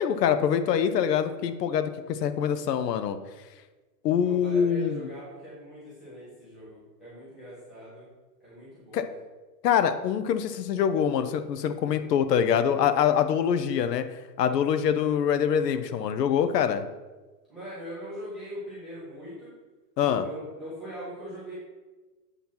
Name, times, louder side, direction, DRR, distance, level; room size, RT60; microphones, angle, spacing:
voice 1, 0.0-3.2 4.0-5.0 8.9-9.0 9.6-14.0 14.4-16.8 20.0-20.3, left 8 dB, 75° left, 10 dB, 0.8 m, -24 dB
voice 2, 4.2-8.1 8.4-9.1 17.5-19.5 20.0-21.5, equal, ahead, -12 dB, 0.3 m, -41 dB
8.3 x 2.9 x 5.5 m, 1.2 s
hypercardioid pair, 145°, 49 cm